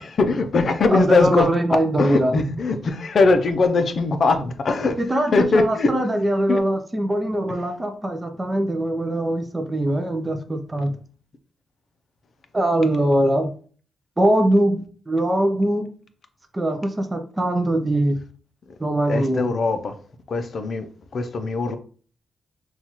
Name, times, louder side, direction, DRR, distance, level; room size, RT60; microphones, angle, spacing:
voice 1, 0.0-1.5 2.0-5.0 5.3-5.9 6.5-6.6 19.1-19.9 20.3-21.8, left 3 dB, 45° left, 0.5 m, -21 dB
voice 2, 0.9-2.4 5.0-11.0 12.5-13.5 14.2-14.8 15.1-15.9 16.5-18.2 18.8-19.5, right 1 dB, 15° right, 0.4 m, -22 dB
5.6 x 2.3 x 2.9 m
wide cardioid pair, 135°, 0 cm